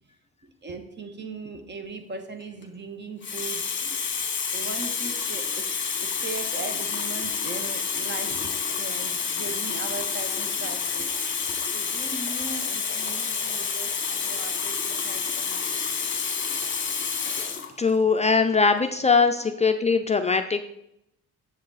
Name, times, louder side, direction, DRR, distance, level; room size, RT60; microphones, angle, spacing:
voice 1, 0.6-4.0 4.5-11.1 11.5-16.3 19.5-19.6, right 3 dB, 35° right, 6 dB, 1.3 m, -39 dB
Water tap faucet, 2.4-2.6 3.2-17.7 18.6-18.8, left 6 dB, 40° left, 1.5 m, -29 dB
voice 2, 17.8-20.6, left 4 dB, 20° left, 6 dB, 0.5 m, -21 dB
7.4 x 7.2 x 4.0 m, 0.79 s
cardioid pair, 90°, 30 cm